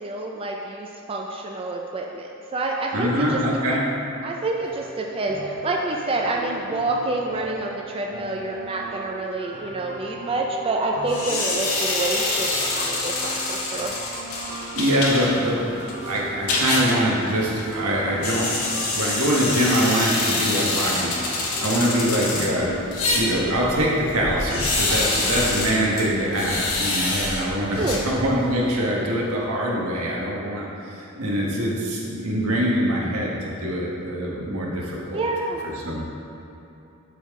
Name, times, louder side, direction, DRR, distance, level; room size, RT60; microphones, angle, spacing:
voice 1, 0.0-3.4 4.2-12.5 12.8-13.9 27.8-28.1 35.1-35.6, right 2 dB, 25° right, 0 dB, 0.4 m, -28 dB
voice 2, 2.9-3.8 14.7-15.6 16.0-21.1 21.6-22.7 23.1-35.3 35.6-36.0, equal, 80° right, -4 dB, 1.4 m, -24 dB
sound 1, 4.6-23.6, right 2 dB, 40° right, 1.5 m, -39 dB
sound 2, 11.1-28.6, left 2 dB, 75° left, 1.2 m, -27 dB
11.0 x 3.8 x 3.7 m, 2.9 s
head